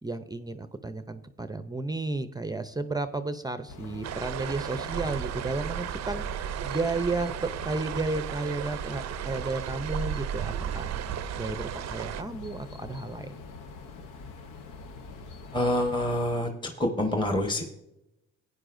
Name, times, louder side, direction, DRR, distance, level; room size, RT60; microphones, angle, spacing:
voice 1, 0.0-6.2 6.6-10.9 11.3-13.4, right 3 dB, 15° right, 10 dB, 0.5 m, -33 dB
sound 1, 3.7-16.3, left 4 dB, 85° left, 0.9 m, -44 dB
sound 2, 4.0-12.2, right 10 dB, 60° right, 0.5 m, -34 dB
voice 2, 15.5-17.6, left 1 dB, 15° left, 4 dB, 1.2 m, -27 dB
15.5 x 9.6 x 2.6 m, 0.89 s
cardioid pair, 90°, 30 cm